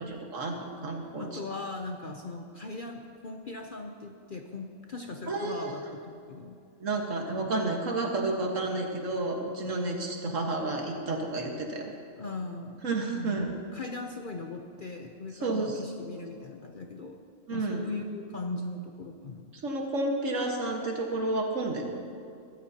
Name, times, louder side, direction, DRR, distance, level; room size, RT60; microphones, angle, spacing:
voice 1, 0.0-1.3 5.3-5.8 6.8-11.9 12.8-13.5 15.4-15.8 16.2-16.3 17.5-17.8 19.6-22.0, right 2 dB, 60° right, 1 dB, 1.9 m, -31 dB
voice 2, 1.2-6.6 7.4-7.5 12.2-12.8 13.1-17.2 17.5-19.5, left 3 dB, 45° left, 3 dB, 0.8 m, -39 dB
21.0 x 13.5 x 2.9 m, 2.4 s
omnidirectional pair, 1.5 m